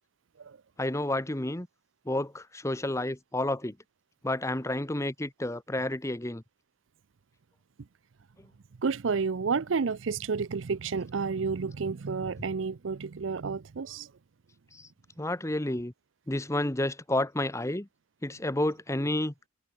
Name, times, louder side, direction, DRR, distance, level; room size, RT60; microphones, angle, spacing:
voice 1, 0.8-1.7 2.1-3.7 4.2-6.4 14.7-14.9 15.2-15.9 16.3-17.9 18.2-19.3, left 1 dB, 15° left, 1.0 m, -30 dB
voice 2, 8.8-14.1, right 5 dB, 90° right, 0.6 m, -30 dB
head